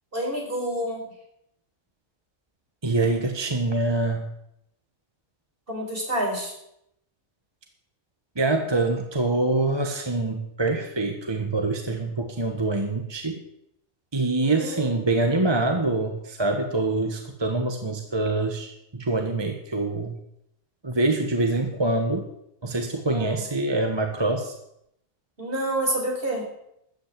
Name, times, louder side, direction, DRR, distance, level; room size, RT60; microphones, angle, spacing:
voice 1, 0.1-1.1 5.7-6.5 14.4-15.0 23.1-23.4 25.4-26.4, right 1 dB, 40° right, -1 dB, 4.8 m, -28 dB
voice 2, 2.8-4.2 8.4-13.4 14.1-20.1 20.8-22.3 22.6-24.5, right 2 dB, 20° right, 4 dB, 1.2 m, -25 dB
13.0 x 9.0 x 8.4 m, 0.79 s
omnidirectional pair, 1.4 m